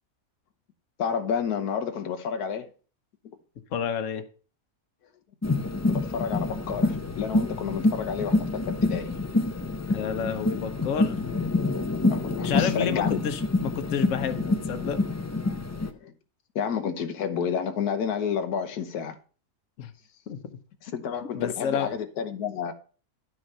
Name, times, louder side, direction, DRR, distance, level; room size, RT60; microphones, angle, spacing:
voice 1, 1.0-2.7 5.9-9.1 12.1-13.2 15.8-16.1 16.5-19.2 20.8-22.7, left 7 dB, 90° left, 1.5 m, -30 dB
voice 2, 3.7-4.2 9.9-11.4 12.4-15.0 19.8-19.9 20.3-20.4 21.3-21.9, left 7 dB, 60° left, 1.3 m, -30 dB
sound 1, 5.4-15.9, left 2 dB, 15° left, 0.5 m, -27 dB
11.0 x 6.2 x 5.5 m
omnidirectional pair, 1.6 m